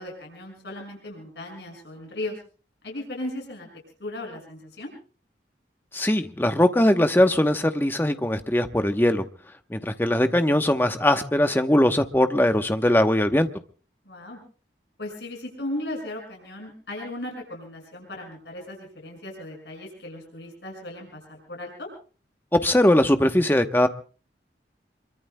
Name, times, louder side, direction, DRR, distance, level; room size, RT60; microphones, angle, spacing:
voice 1, 0.0-2.4 2.8-3.7 4.0-4.9 14.0-14.4 15.0-21.9, left 1 dB, 80° left, 0 dB, 6.2 m, -36 dB
voice 2, 5.9-9.2 9.7-13.5 22.5-23.9, left 1 dB, 10° left, 8 dB, 0.9 m, -20 dB
27.0 x 23.5 x 2.2 m, 0.38 s
head